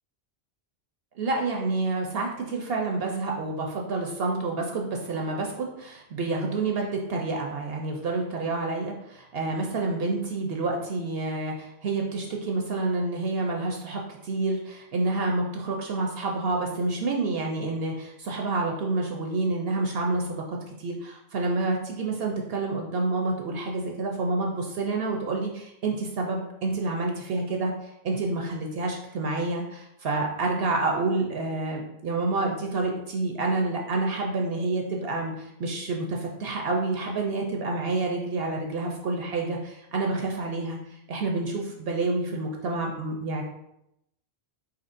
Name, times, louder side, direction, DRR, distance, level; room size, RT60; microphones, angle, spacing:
voice 1, 1.2-43.4, right 3 dB, 65° right, 1 dB, 0.8 m, -28 dB
4.3 x 4.3 x 2.5 m, 0.82 s
omnidirectional pair, 1.1 m